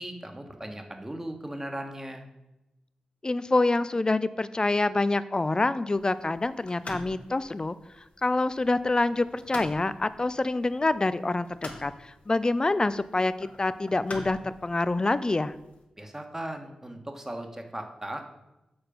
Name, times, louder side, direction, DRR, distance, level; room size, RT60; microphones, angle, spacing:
voice 1, 0.0-2.3 16.0-18.2, right 1 dB, 15° right, 4 dB, 1.2 m, -37 dB
voice 2, 3.2-7.8 8.2-15.5, left 2 dB, 30° left, 15 dB, 0.4 m, -26 dB
sound 1, 5.9-15.8, left 2 dB, 55° left, 1.4 m, -46 dB
6.9 x 4.4 x 5.0 m, 0.96 s
cardioid pair, 40°, 3 cm